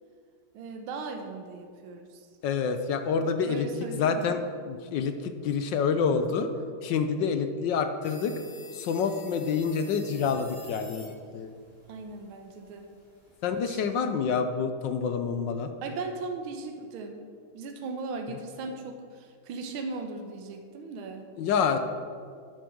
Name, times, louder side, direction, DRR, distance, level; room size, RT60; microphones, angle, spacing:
voice 1, 0.5-2.3 3.4-4.4 11.9-12.9 13.6-13.8 15.8-17.3 17.5-21.3, right 3 dB, 75° right, 4 dB, 1.8 m, -38 dB
voice 2, 2.4-4.4 4.7-6.5 6.8-8.3 8.7-11.5 13.4-15.7 21.4-21.8, left 6 dB, 70° left, 8 dB, 1.2 m, -27 dB
sound 1, 8.0-14.0, left 2 dB, 15° left, 1.8 m, -50 dB
10.5 x 8.1 x 6.2 m, 2.2 s
omnidirectional pair, 2.4 m